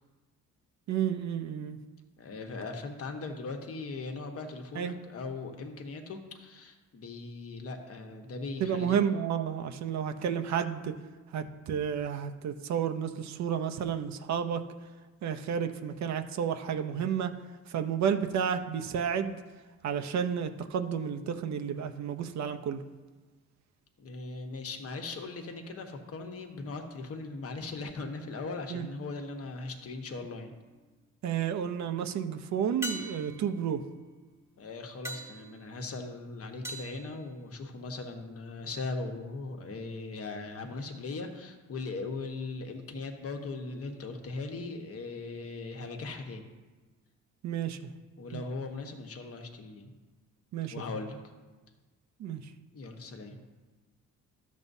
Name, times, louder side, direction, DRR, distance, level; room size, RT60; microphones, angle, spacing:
voice 1, 0.9-1.8 4.7-5.0 8.6-10.9 11.3-14.6 15.2-17.3 17.7-19.4 19.8-22.8 28.7-28.9 31.2-33.8 47.4-47.9 48.3-48.4 50.5-50.7 52.2-52.4, right 8 dB, 65° right, 7 dB, 0.7 m, -31 dB
voice 2, 2.2-9.0 24.0-30.5 34.6-46.5 48.2-49.9 50.7-51.2 52.7-53.4, left 3 dB, 50° left, 4 dB, 1.2 m, -39 dB
sound 1, 30.5-31.1 32.8-38.0 42.4-42.5, right 1 dB, 10° right, 1.0 m, -44 dB
12.5 x 7.3 x 2.7 m, 1.3 s
cardioid pair, 90°, 30 cm